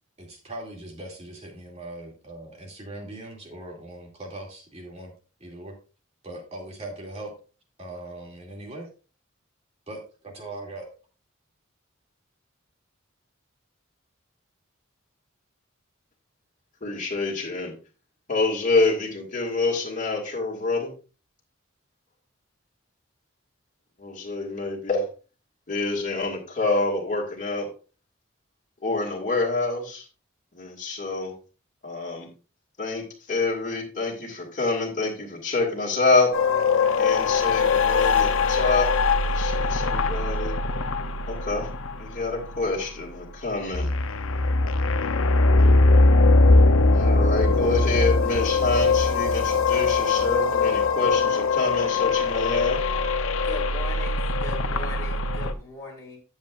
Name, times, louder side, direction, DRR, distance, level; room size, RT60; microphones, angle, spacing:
voice 1, 0.2-5.1 5.4-5.7 6.2-7.3 7.8-8.9 9.9-10.9, right 2 dB, 30° right, 0 dB, 2.4 m, -40 dB
voice 2, 16.8-17.7 18.3-20.9 24.0-25.1 25.7-27.7 28.8-30.1 30.5-31.3 31.8-32.3 32.8-36.3 37.0-38.9 39.2-40.5 41.3-41.7 42.0-43.9 46.9-52.8, left 3 dB, 40° left, -2 dB, 2.2 m, -27 dB
Desolate Ship, 36.3-55.5, left 3 dB, 75° left, 0.7 m, -21 dB
voice 3, 53.4-56.2, left 3 dB, 15° left, -3 dB, 2.3 m, -39 dB
10.0 x 7.4 x 2.5 m, 0.35 s
head